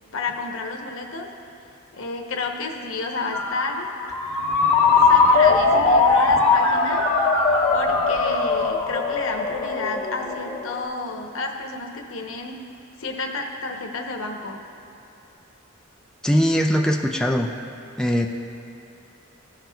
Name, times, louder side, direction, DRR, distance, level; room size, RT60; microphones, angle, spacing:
voice 1, 0.1-1.3 1.9-3.9 5.0-7.0 7.7-12.6 13.0-14.6, left 3 dB, 80° left, 2 dB, 0.9 m, -31 dB
Ringtone, 3.3-10.8, left 4 dB, 30° left, 1.2 m, -20 dB
voice 2, 16.2-17.5 18.0-18.3, equal, 5° left, 1 dB, 0.3 m, -20 dB
15.0 x 5.9 x 2.3 m, 2.8 s
head